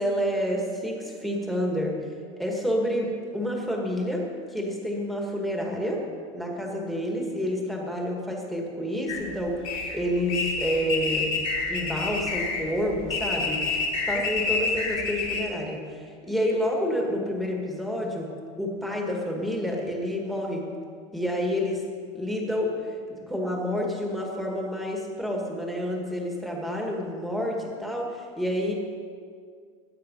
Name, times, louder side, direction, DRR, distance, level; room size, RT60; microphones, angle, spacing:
voice 1, 0.0-2.0 2.4-6.0 6.3-11.3 11.7-18.3 18.6-20.7 21.1-21.8 22.1-22.7 23.1-28.7, equal, ahead, -1 dB, 1.8 m, -29 dB
sound 1, 9.1-15.4, left 4 dB, 40° left, 2.7 m, -28 dB
20.0 x 8.7 x 5.5 m, 2.1 s
cardioid pair, 175°, 16 cm